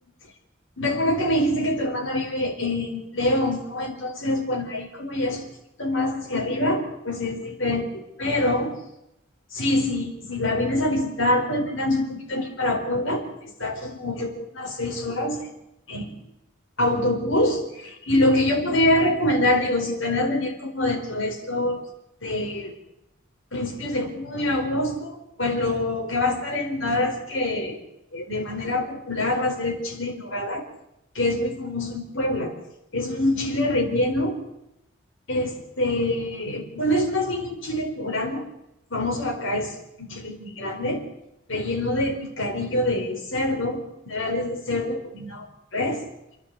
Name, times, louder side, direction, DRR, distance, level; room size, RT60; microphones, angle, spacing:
voice 1, 0.8-5.4 5.8-8.7 9.5-15.5 15.9-16.1 16.8-21.8 22.2-22.7 23.5-27.8 28.1-30.6 31.1-32.5 32.9-34.4 35.3-38.4 38.9-41.0 41.5-45.5 45.7-46.0, left 1 dB, 65° left, 2 dB, 4.5 m, -25 dB
29.0 x 11.0 x 8.4 m, 0.86 s
head